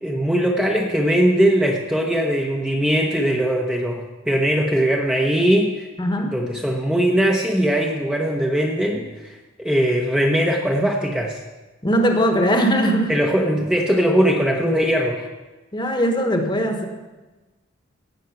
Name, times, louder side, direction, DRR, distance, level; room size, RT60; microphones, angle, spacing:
voice 1, 0.0-5.9 6.2-11.4 13.1-15.2, equal, 5° right, -1 dB, 0.8 m, -20 dB
voice 2, 6.0-6.3 11.8-13.1 15.7-16.9, equal, 20° left, 4 dB, 1.2 m, -20 dB
17.0 x 6.5 x 5.8 m, 1.2 s
head